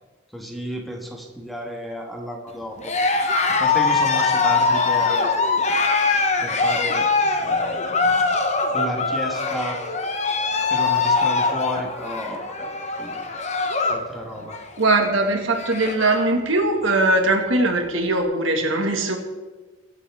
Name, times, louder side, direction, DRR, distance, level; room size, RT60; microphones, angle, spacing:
voice 1, 0.3-3.2 3.5-5.6 6.4-7.1 7.4-8.2 8.7-9.8 10.7-12.7 13.0-13.2 13.9-14.6, equal, ahead, 1 dB, 1.4 m, -32 dB
Cheering, 2.8-14.1 14.4-14.8 15.2-15.3 15.5-16.3, left 4 dB, 35° left, 1.0 m, -22 dB
voice 2, 14.8-19.2, right 2 dB, 85° right, 3 dB, 2.0 m, -20 dB
22.0 x 8.1 x 3.6 m, 1.3 s
head